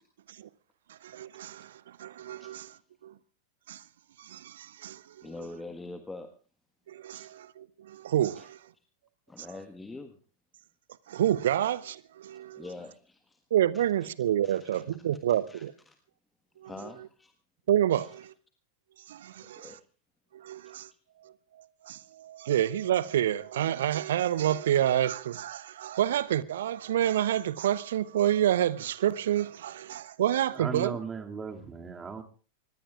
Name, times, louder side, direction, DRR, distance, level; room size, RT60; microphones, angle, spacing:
voice 1, 1.0-2.7 3.0-3.1 3.7-3.8 4.2-5.0 6.9-8.6 11.1-12.6 13.5-15.7 16.6-16.7 17.7-18.3 19.1-19.7 20.3-20.9 21.8-31.0, right 11 dB, 60° right, 0.8 m, -28 dB
voice 2, 5.2-6.3 7.1-7.3 8.4-8.5 9.3-10.2 12.5-13.4 13.7-13.8 14.4-14.8 15.3-16.0 16.6-17.3 17.9-18.1 19.4-19.8 22.5-22.6, left 2 dB, 10° left, 1.5 m, -45 dB
voice 3, 30.5-32.2, right 6 dB, 15° right, 2.4 m, -36 dB
24.5 x 20.5 x 2.5 m
figure-of-eight pair, 90°, 0 cm